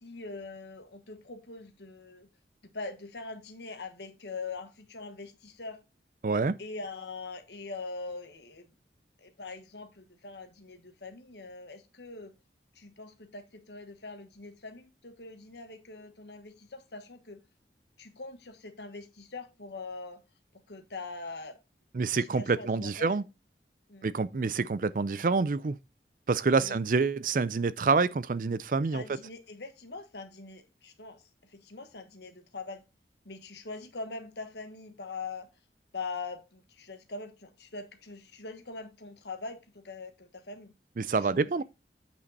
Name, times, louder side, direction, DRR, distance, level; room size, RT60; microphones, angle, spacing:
voice 1, 0.0-2.3 2.6-5.8 6.6-8.6 9.2-12.3 12.7-17.4 18.0-20.2 20.7-21.6 22.2-23.2 23.9-24.1 24.4-24.5 26.6-26.8 28.9-32.8 33.2-35.5 35.9-41.5, left 3 dB, 75° left, 1.4 m, -43 dB
voice 2, 6.2-6.6 21.9-23.2 24.0-25.8 26.3-29.0 41.0-41.6, right 4 dB, 50° right, 0.4 m, -27 dB
8.4 x 5.3 x 4.1 m
head